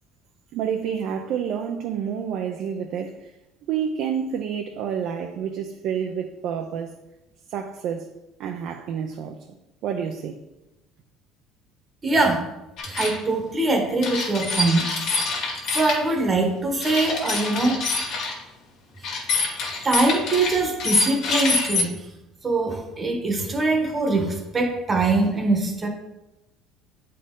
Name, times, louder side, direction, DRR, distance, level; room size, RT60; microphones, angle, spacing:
voice 1, 0.5-3.3 3.7-6.9 7.5-8.1 8.4-9.5 9.8-10.4, right 8 dB, 60° right, 4 dB, 0.5 m, -29 dB
voice 2, 12.0-12.4 12.9-14.9 15.7-17.8 19.8-21.9 22.4-25.9, right 2 dB, 20° right, 3 dB, 1.1 m, -22 dB
sound 1, 12.8-13.2 14.0-16.0 16.8-18.4 19.0-21.8, left 3 dB, 60° left, 1.7 m, -25 dB
8.2 x 4.3 x 3.7 m, 0.97 s
cardioid pair, 125°, 0 cm